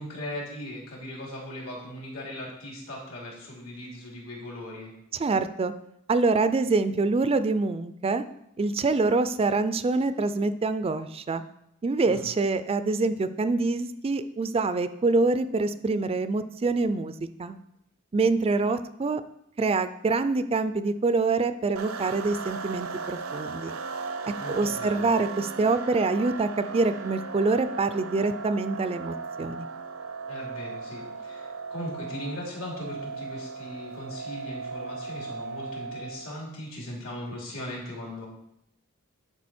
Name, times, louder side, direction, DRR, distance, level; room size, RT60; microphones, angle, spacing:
voice 1, 0.0-4.9 12.0-12.3 24.4-25.1 30.3-38.3, left 1 dB, 80° left, -2 dB, 2.9 m, -38 dB
voice 2, 5.1-5.7 6.1-8.2 8.6-11.4 11.8-17.6 18.1-19.2 19.6-23.7 24.3-29.7, right 3 dB, 30° right, 12 dB, 0.4 m, -25 dB
sound 1, 21.8-36.3, right 4 dB, 75° right, 0.7 m, -37 dB
10.5 x 5.0 x 4.3 m, 0.78 s
head